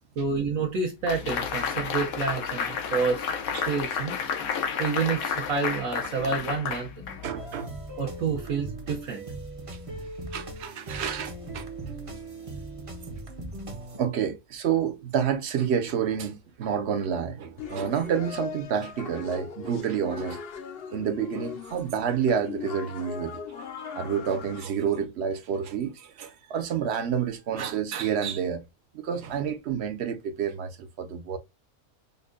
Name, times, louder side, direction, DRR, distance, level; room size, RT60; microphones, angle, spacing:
voice 1, 0.2-3.3 3.7-4.2 4.8-7.3 8.0-9.2, right 5 dB, 75° right, 1.2 m, -29 dB
sound 1, 1.1-7.5, left 6 dB, 90° left, 1.2 m, -31 dB
voice 2, 7.2-7.7 10.3-11.7 14.0-20.4 20.9-23.4 23.9-28.6 28.9-31.4, right 7 dB, 60° right, 0.9 m, -29 dB
sound 2, 7.4-14.0, right 2 dB, 35° right, 0.6 m, -39 dB
sound 3, 17.6-24.6, left 6 dB, 60° left, 0.7 m, -39 dB
5.4 x 2.2 x 2.4 m
omnidirectional pair, 1.4 m